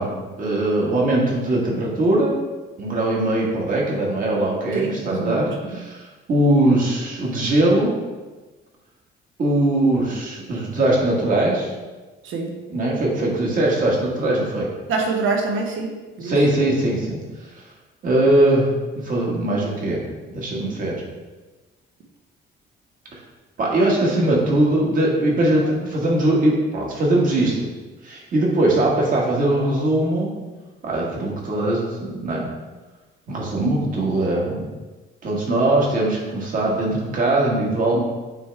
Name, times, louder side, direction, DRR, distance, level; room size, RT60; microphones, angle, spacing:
voice 1, 0.0-2.4 2.8-7.9 9.4-11.7 12.7-14.7 16.2-17.2 18.0-18.7 19.0-20.0 20.3-20.9 23.6-27.7 28.0-30.3 30.8-32.5 33.3-34.7 35.2-38.0, right 1 dB, 40° right, -3 dB, 1.6 m, -21 dB
voice 2, 4.7-5.8 12.2-12.6 14.9-16.4 23.8-23.9 25.5-25.9, right 4 dB, 70° right, 2 dB, 1.1 m, -26 dB
8.7 x 3.5 x 3.4 m, 1.2 s
cardioid pair, 170°, 21 cm